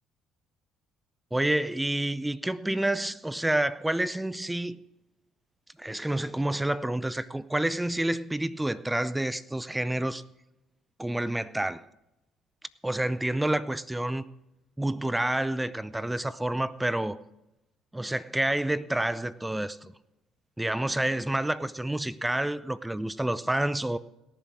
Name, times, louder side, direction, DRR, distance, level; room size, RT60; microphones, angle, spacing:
voice 1, 1.3-4.8 5.8-10.2 11.0-11.9 12.8-14.2 14.8-17.2 17.9-19.9 20.6-24.0, right 1 dB, 10° right, 0.5 m, -28 dB
18.0 x 7.2 x 6.1 m
supercardioid pair, 70°, 0 cm